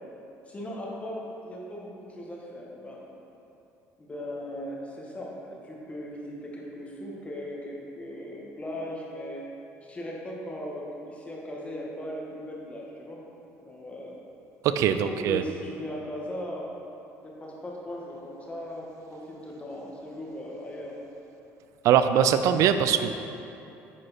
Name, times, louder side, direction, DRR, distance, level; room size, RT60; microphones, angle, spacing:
voice 1, 0.5-3.0 4.0-9.4 9.8-13.2 13.6-14.1 14.8-16.8 17.4-20.9, left 1 dB, 25° left, -3 dB, 1.6 m, -38 dB
voice 2, 14.8-15.4 21.8-23.1, right 8 dB, 65° right, 10 dB, 0.4 m, -22 dB
8.9 x 4.8 x 4.2 m, 2.8 s
supercardioid pair, 95°, 6 cm